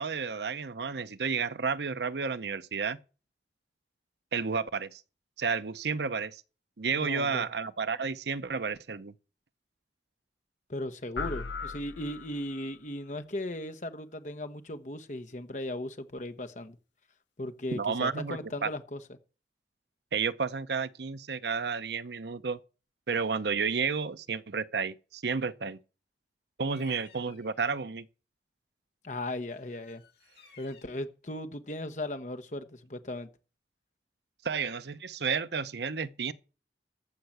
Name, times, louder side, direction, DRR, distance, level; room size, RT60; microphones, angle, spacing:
voice 1, 0.0-3.0 4.3-5.0 5.4-6.4 6.8-9.1 17.7-18.7 20.1-22.6 23.1-25.8 26.6-28.1 34.4-36.3, right 5 dB, 70° right, 0.7 m, -31 dB
voice 2, 6.9-7.5 10.7-16.8 17.4-19.0 26.8-26.9 29.0-30.0 30.6-33.3, left 1 dB, 45° left, 1.1 m, -37 dB
sound 1, 11.2-12.7, left 5 dB, 90° left, 0.6 m, -38 dB
Bird vocalization bird call bird song, 26.6-27.6 29.5-31.1, left 5 dB, 70° left, 2.4 m, -58 dB
14.5 x 5.8 x 7.8 m
head